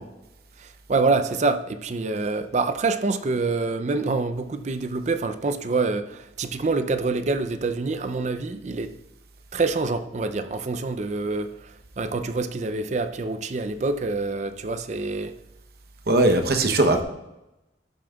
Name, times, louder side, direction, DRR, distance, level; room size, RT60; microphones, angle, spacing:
voice 1, 0.6-8.9 9.5-15.3, right 3 dB, 40° right, 0.5 m, -26 dB
voice 2, 16.1-17.0, right 2 dB, 55° right, 0.9 m, -19 dB
13.0 x 7.2 x 2.3 m
head